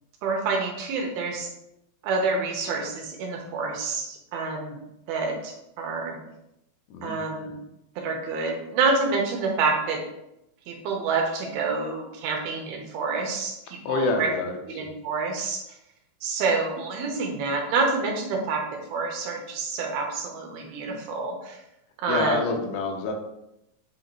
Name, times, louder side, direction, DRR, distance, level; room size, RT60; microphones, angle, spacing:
voice 1, 0.2-1.5 2.0-4.8 5.1-6.2 7.0-7.6 8.0-10.0 10.7-14.3 14.7-15.6 16.2-18.6 18.9-21.6 22.0-22.6, right 4 dB, 75° right, 1 dB, 2.7 m, -27 dB
voice 2, 13.9-14.8 22.1-23.1, left 4 dB, 80° left, 3 dB, 2.6 m, -27 dB
7.9 x 2.8 x 4.4 m, 0.85 s
omnidirectional pair, 4.6 m